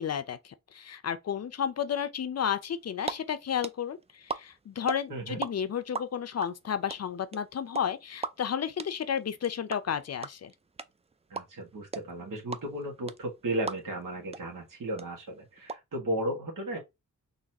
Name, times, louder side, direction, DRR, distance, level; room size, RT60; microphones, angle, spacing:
voice 1, 0.0-10.5, left 8 dB, 55° left, 0.5 m, -32 dB
sound 1, 2.7-3.1 3.4-5.5 5.7-14.1 14.3-14.4 14.7-15.7, right 4 dB, 20° right, 0.3 m, -36 dB
voice 2, 11.3-16.8, right 1 dB, 90° right, 1.5 m, -34 dB
4.0 x 2.7 x 2.7 m
wide cardioid pair, 85°, 31 cm